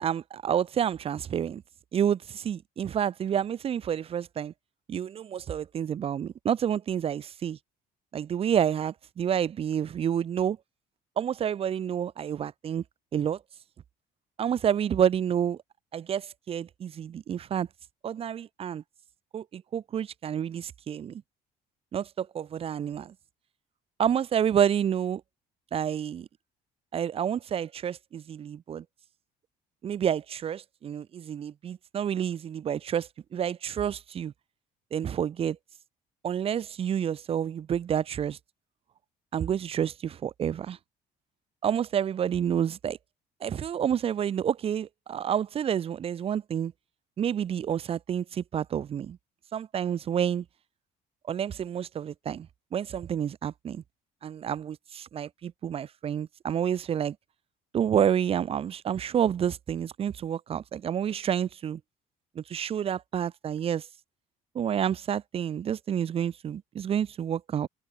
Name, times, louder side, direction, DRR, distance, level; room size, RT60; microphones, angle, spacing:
voice 1, 0.0-1.6 1.9-4.5 4.9-7.6 8.1-10.6 11.2-12.8 13.1-13.4 14.4-15.6 15.9-17.7 18.0-18.8 19.3-21.2 21.9-23.1 24.0-25.2 25.7-26.3 26.9-28.8 29.8-34.3 34.9-35.6 36.2-38.4 39.3-40.8 41.6-43.0 43.4-46.7 47.2-49.2 49.5-50.4 51.3-53.8 54.2-57.2 57.7-61.8 62.4-63.9 64.5-67.7, right 9 dB, 35° right, 0.4 m, -29 dB
cardioid pair, 110°, 17 cm